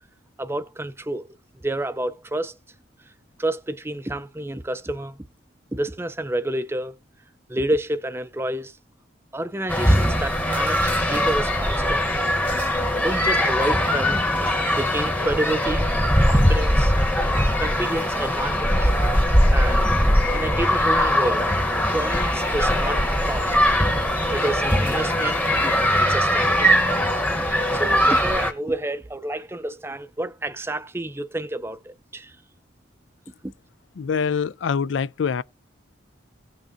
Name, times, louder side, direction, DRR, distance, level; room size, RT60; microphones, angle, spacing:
voice 1, 0.4-1.4 1.6-2.6 3.4-5.2 5.7-6.9 7.5-8.8 9.3-12.1 13.0-15.9 16.2-16.9 17.6-18.9 19.5-19.9 20.3-23.6 24.3-26.7 27.7-32.4 33.4-33.5, right 1 dB, 10° right, 0.4 m, -29 dB
sound 1, 9.7-28.5, equal, 10° left, 0.9 m, -21 dB
voice 2, 34.0-35.4, left 6 dB, 70° left, 0.4 m, -24 dB
17.0 x 6.3 x 2.6 m
head